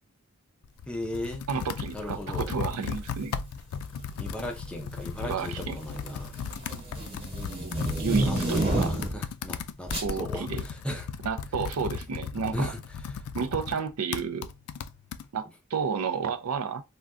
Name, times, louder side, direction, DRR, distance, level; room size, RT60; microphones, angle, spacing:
Computer keyboard, 0.6-15.2, left 6 dB, 80° left, 0.3 m, -36 dB
voice 1, 0.9-1.4 1.9-2.5 4.2-6.3 8.2-11.1 12.5-12.8 13.0-13.2, equal, 5° left, 0.5 m, -37 dB
voice 2, 1.5-3.3 5.2-5.7 7.8-8.9 10.0-10.6 11.2-12.7 13.3-14.5 15.3-16.8, right 5 dB, 85° right, 0.4 m, -31 dB
sound 1, 3.0-3.2 4.2-4.7 5.0-9.3 9.9-10.1, right 1 dB, 30° right, 1.1 m, -30 dB
2.5 x 2.2 x 3.4 m
head